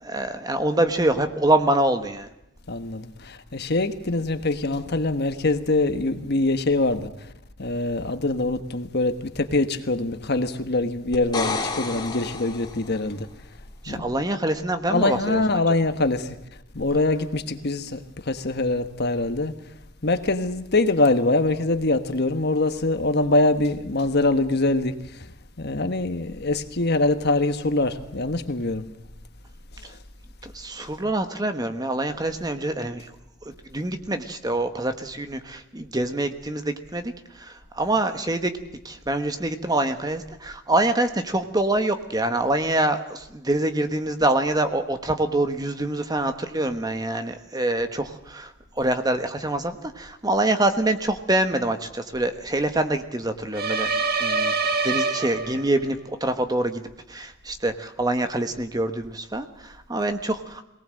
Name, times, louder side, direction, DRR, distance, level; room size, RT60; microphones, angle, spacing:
voice 1, 0.0-2.3 13.8-15.4 30.4-33.1 33.7-37.1 37.4-38.5 38.8-48.5 48.8-53.9 54.2-56.8 57.1-60.6, right 1 dB, 20° right, 1.3 m, -25 dB
voice 2, 2.7-7.3 7.6-13.3 13.9-14.2 14.7-16.4 16.7-19.5 20.0-25.3 25.6-28.9 29.7-30.0, left 2 dB, 50° left, 1.4 m, -24 dB
sound 1, 11.1-13.1 16.8-16.9, left 3 dB, 20° left, 3.1 m, -30 dB
sound 2, 53.5-55.9, right 4 dB, 45° right, 1.4 m, -25 dB
23.0 x 18.5 x 7.7 m
head